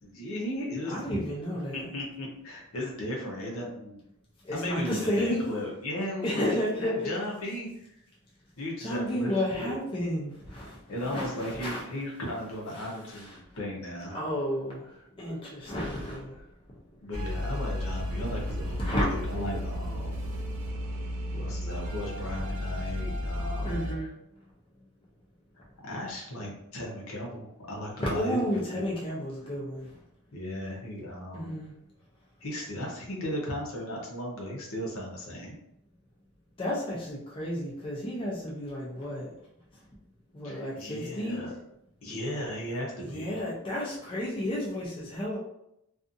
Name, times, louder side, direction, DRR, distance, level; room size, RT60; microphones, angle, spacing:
voice 1, 0.0-1.2 1.7-4.0 4.5-8.0 8.6-9.8 10.9-14.2 17.0-20.2 21.3-23.9 25.8-28.8 30.3-31.6 32.4-35.6 40.4-41.5 42.0-43.4, left 1 dB, 65° left, -2 dB, 0.8 m, -36 dB
voice 2, 0.9-1.9 4.4-5.4 6.2-7.1 8.8-10.8 11.0-11.8 12.7-13.4 14.1-14.9 15.2-16.4 18.8-19.1 23.6-24.1 28.0-30.0 31.3-31.7 36.6-39.3 40.3-41.5 43.0-45.4, equal, 25° left, -5 dB, 0.5 m, -32 dB
sound 1, 17.1-23.9, equal, 85° right, 0.5 m, -33 dB
2.6 x 2.5 x 2.5 m, 0.80 s
head